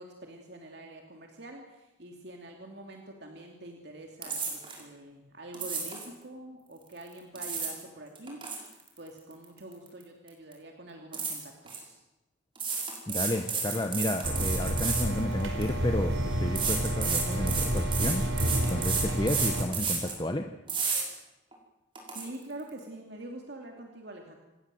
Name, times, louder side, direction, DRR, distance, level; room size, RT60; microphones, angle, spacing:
voice 1, 0.0-8.4 9.0-12.0 22.1-24.4, right 1 dB, 55° right, 2 dB, 2.9 m, -45 dB
sound 1, 4.2-4.8 5.5-6.1 7.1-7.8 8.2-10.0 10.3-10.5 11.1-11.8 12.6-15.7 16.6-20.2 20.7-21.0 21.5-21.6 22.0-22.2, right 5 dB, 25° right, 5.4 m, -32 dB
voice 2, 13.1-20.5, left 1 dB, 25° left, 6 dB, 1.0 m, -32 dB
sound 2, 14.2-19.6, right 1 dB, 90° right, 4.7 m, -30 dB
27.0 x 20.0 x 7.8 m, 1.0 s
head